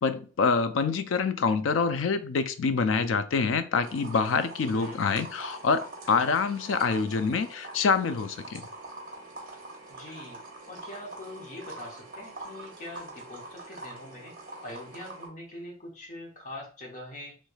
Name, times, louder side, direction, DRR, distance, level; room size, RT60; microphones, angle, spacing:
voice 1, 0.0-8.7, left 5 dB, 85° left, 0.4 m, -26 dB
sound 1, 3.8-15.3, right 2 dB, 45° right, 0.9 m, -44 dB
voice 2, 4.7-5.0 9.9-10.4 10.7-14.3 14.6-17.4, left 1 dB, 40° left, 0.9 m, -43 dB
3.2 x 3.1 x 2.2 m
head